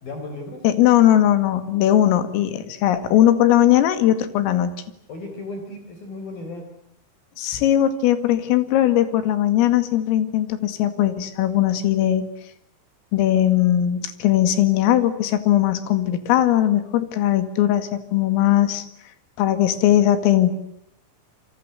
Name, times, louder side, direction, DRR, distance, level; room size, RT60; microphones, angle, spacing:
voice 1, 0.0-0.6 5.1-6.6, left 2 dB, 45° left, 5 dB, 5.7 m, -35 dB
voice 2, 0.6-4.7 7.4-12.3 13.1-18.9 19.4-20.5, left 12 dB, 85° left, 11 dB, 4.6 m, -19 dB
28.5 x 24.5 x 8.1 m, 0.73 s
omnidirectional pair, 5.9 m